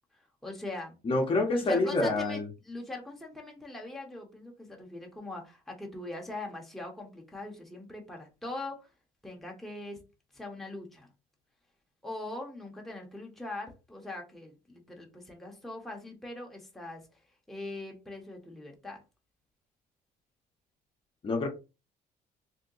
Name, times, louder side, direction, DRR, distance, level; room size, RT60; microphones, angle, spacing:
voice 1, 0.4-1.0 1.5-8.9 9.2-10.0 10.3-11.1 12.0-17.2 17.5-19.0, left 2 dB, ahead, 0.9 m, -41 dB
voice 2, 1.0-2.5 21.2-21.5, left 2 dB, 30° left, 0.8 m, -27 dB
2.7 x 2.1 x 3.8 m
cardioid pair, 110°, 17 cm